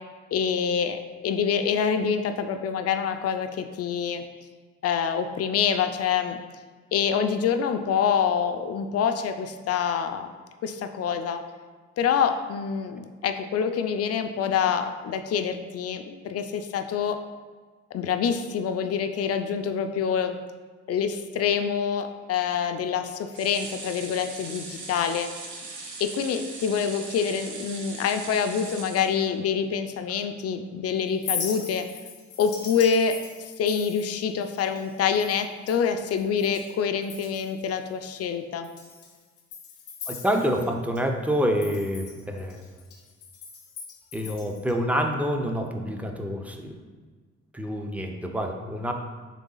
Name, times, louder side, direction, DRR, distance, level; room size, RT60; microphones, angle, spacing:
voice 1, 0.3-4.2 4.8-6.4 6.9-10.3 10.6-11.4 12.0-17.2 17.9-20.4 20.9-25.3 26.0-31.9 32.4-38.7, left 7 dB, 55° left, 8 dB, 0.4 m, -26 dB
sound 1, 23.3-29.6 30.1-30.2 30.5-30.6, right 3 dB, 75° right, 0.9 m, -40 dB
Chink clink, 31.1-36.7 37.0-37.6 38.0-38.1 38.6-41.0 41.3-44.7, left 6 dB, 75° left, 0.8 m, -39 dB
voice 2, 40.1-42.6 44.1-46.9 47.5-48.9, equal, 5° right, 3 dB, 0.5 m, -27 dB
4.0 x 3.3 x 3.8 m, 1.5 s
cardioid pair, 90°, 30 cm